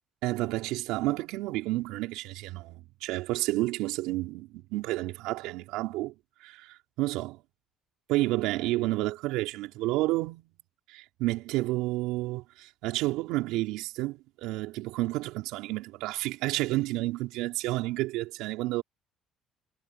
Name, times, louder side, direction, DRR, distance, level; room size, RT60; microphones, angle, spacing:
voice 1, 0.2-6.1 6.4-6.6 7.0-7.4 8.1-10.5 10.9-18.8, right 19 dB, 80° right, 4.9 m, -30 dB
supercardioid pair, 70°, 0 cm